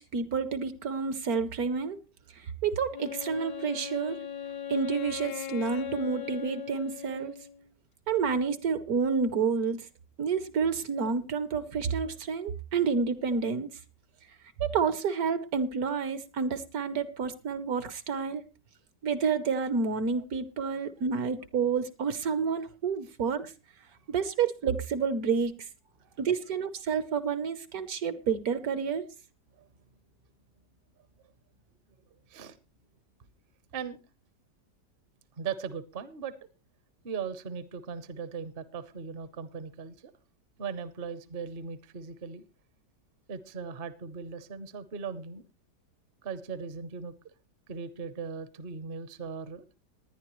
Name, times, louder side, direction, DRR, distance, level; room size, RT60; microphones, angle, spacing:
voice 1, 0.0-2.0 2.4-4.2 4.7-7.3 8.1-9.9 10.2-13.7 14.6-18.4 19.0-23.5 24.1-25.5 26.2-29.1, right 5 dB, 65° right, 13 dB, 1.3 m, -29 dB
Wind instrument woodwind instrument, 2.9-7.7, left 9 dB, 65° left, 1.3 m, -39 dB
voice 2, 35.4-36.3 37.0-40.1 40.6-42.4 43.3-45.4 46.2-47.1 47.7-49.7, right 6 dB, 45° right, 13 dB, 0.8 m, -38 dB
19.5 x 10.5 x 3.1 m, 0.29 s
omnidirectional pair, 1.8 m